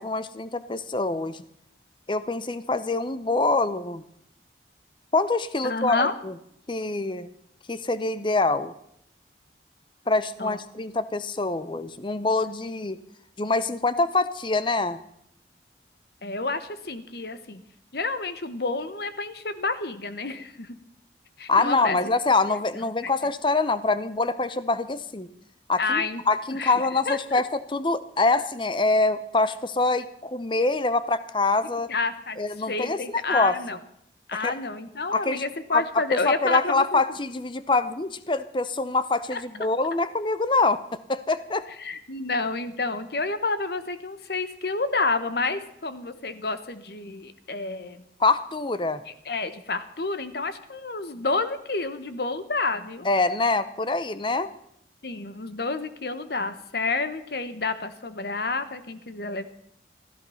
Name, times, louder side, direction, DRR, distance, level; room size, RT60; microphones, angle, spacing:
voice 1, 0.0-1.4 2.1-4.0 5.1-6.3 6.7-7.3 7.7-8.7 10.1-13.0 13.4-15.0 21.5-25.3 25.7-31.9 32.4-33.0 33.3-33.6 34.4-34.6 35.1-35.4 35.7-40.8 41.1-41.7 48.2-49.0 53.0-54.5, left 3 dB, 25° left, 14 dB, 0.7 m, -25 dB
voice 2, 5.6-6.1 10.4-10.6 16.2-17.6 17.9-20.8 21.4-22.0 23.0-23.1 25.8-26.2 26.5-26.7 27.1-27.2 31.9-32.4 32.7-33.8 34.3-37.0 39.3-39.4 41.8-48.0 49.1-53.1 55.0-59.5, left 3 dB, 60° left, 12 dB, 1.1 m, -29 dB
15.0 x 13.5 x 5.7 m, 0.74 s
head